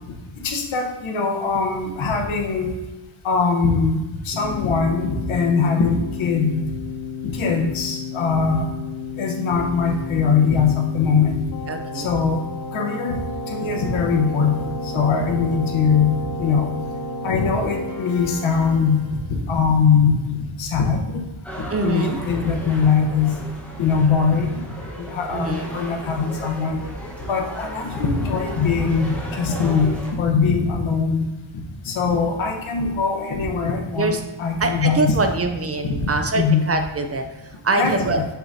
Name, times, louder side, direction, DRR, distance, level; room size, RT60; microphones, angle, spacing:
voice 1, 0.3-2.7 3.2-6.7 7.2-8.7 9.2-11.4 11.9-12.4 12.7-16.7 17.2-19.2 19.5-20.2 20.6-21.2 21.8-23.4 23.8-24.7 25.0-26.8 27.3-31.3 31.8-35.1 35.9-36.1 36.3-36.6 37.8-38.2, left 5 dB, 80° left, 2 dB, 1.1 m, -21 dB
Keyboard (musical), 4.3-19.4, left 3 dB, 45° left, 1.0 m, -32 dB
voice 2, 11.7-12.1 21.7-22.2 25.3-25.8 34.0-34.2 34.6-38.2, right 3 dB, 30° right, 6 dB, 0.5 m, -24 dB
sound 1, 21.4-30.1, equal, 5° left, 1.1 m, -35 dB
7.2 x 5.8 x 2.7 m, 1.1 s
wide cardioid pair, 125°, 47 cm